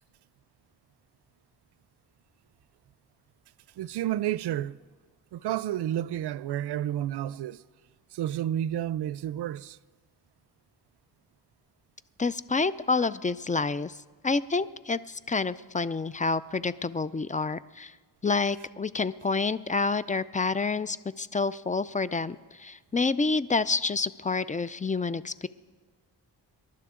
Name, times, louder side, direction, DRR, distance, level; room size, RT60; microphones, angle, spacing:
voice 1, 3.8-4.8 5.3-7.6 8.1-9.8, right 11 dB, 80° right, 0.5 m, -30 dB
voice 2, 12.2-14.0 14.2-17.9 18.2-25.5, left 4 dB, 20° left, 0.4 m, -28 dB
26.5 x 11.5 x 3.7 m
cardioid pair, 70°, 40 cm